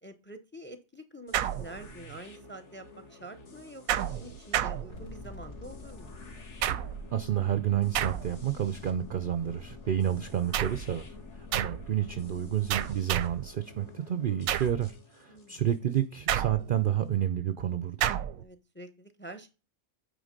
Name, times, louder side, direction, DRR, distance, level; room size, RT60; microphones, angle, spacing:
voice 1, 0.0-6.1 15.3-15.6 18.4-19.5, right 1 dB, 10° left, 0.6 m, -47 dB
sound 1, 1.3-17.1, left 2 dB, 55° left, 1.8 m, -53 dB
sound 2, 1.3-2.2 3.9-5.4 6.6-7.2 7.9-8.6 10.5-10.9 11.5-11.9 12.7-13.5 14.5-14.9 16.3-16.9 18.0-18.4, right 11 dB, 85° right, 1.1 m, -31 dB
sound 3, 4.9-12.9, left 4 dB, 70° left, 3.0 m, -47 dB
voice 2, 7.1-11.1 11.4-18.1, right 10 dB, 60° right, 0.6 m, -30 dB
9.2 x 3.5 x 5.1 m
omnidirectional pair, 1.4 m